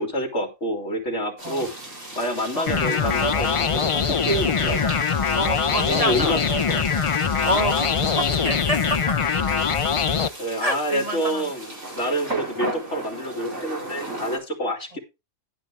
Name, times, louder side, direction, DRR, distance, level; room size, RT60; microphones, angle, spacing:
voice 1, 0.0-1.7 2.1-5.0 5.8-7.0 10.4-15.0, equal, 65° left, 2 dB, 3.0 m, -27 dB
sound 1, 1.4-14.4, right 2 dB, 65° right, 5.0 m, -37 dB
sound 2, 2.7-10.3, left 6 dB, 50° left, 0.4 m, -23 dB
voice 2, 5.3-6.3 7.4-9.2 10.6-11.4, equal, 35° right, 6 dB, 0.7 m, -27 dB
11.0 x 9.0 x 3.3 m, 0.25 s
omnidirectional pair, 1.3 m